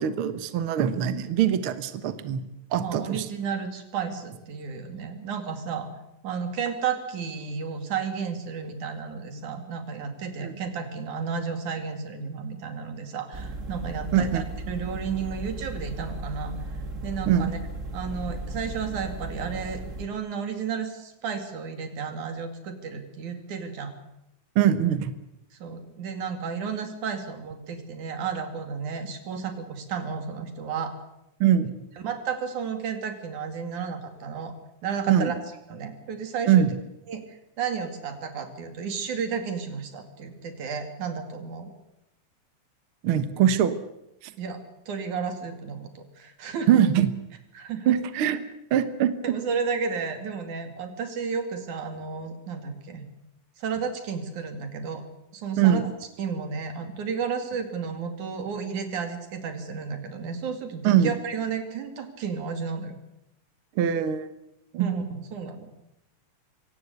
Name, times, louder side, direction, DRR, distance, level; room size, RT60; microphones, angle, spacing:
voice 1, 0.0-3.3 10.4-10.5 14.1-14.4 17.3-17.5 24.5-25.1 31.4-31.7 35.1-35.3 36.5-36.8 43.0-43.8 46.7-47.1 47.9-48.4 48.7-49.1 55.6-55.8 60.8-61.1 63.8-64.3 64.7-64.9, right 9 dB, 60° right, 11 dB, 1.7 m, -22 dB
voice 2, 2.8-5.9 6.2-16.5 17.0-17.6 17.9-23.9 25.6-30.9 32.0-34.5 34.8-35.4 35.7-36.7 37.1-41.7 44.4-44.6 44.9-45.9 46.2-46.7 47.6-48.0 49.2-53.0 53.6-55.0 55.3-55.8 56.2-63.0 64.8-66.0, right 6 dB, 80° right, 7 dB, 3.9 m, -32 dB
sound 1, 13.3-20.1, right 2 dB, 30° right, 1.7 m, -36 dB
24.0 x 17.5 x 8.1 m, 0.86 s
omnidirectional pair, 3.5 m